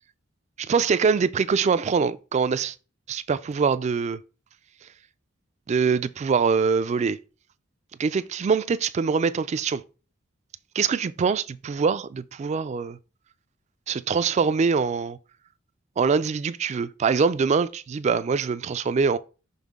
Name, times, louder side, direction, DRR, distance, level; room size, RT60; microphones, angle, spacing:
voice 1, 0.7-2.7 3.1-4.2 5.7-7.2 8.0-9.8 10.8-13.0 13.9-15.2 16.0-19.2, right 5 dB, 35° right, 0.3 m, -23 dB
5.7 x 5.5 x 3.6 m
head